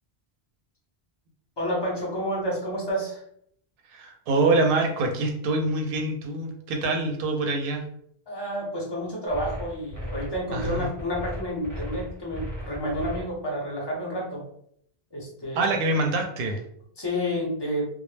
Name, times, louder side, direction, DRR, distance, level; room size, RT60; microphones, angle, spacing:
voice 1, 1.6-3.2 8.3-14.4 15.1-15.7 17.0-17.9, equal, 30° left, -3 dB, 0.6 m, -30 dB
voice 2, 3.9-7.8 10.5-10.9 15.5-16.6, right 2 dB, 65° right, 3 dB, 0.7 m, -25 dB
sound 1, 9.3-13.2, equal, 20° right, 0.6 m, -36 dB
2.0 x 2.0 x 3.1 m, 0.68 s
omnidirectional pair, 1.1 m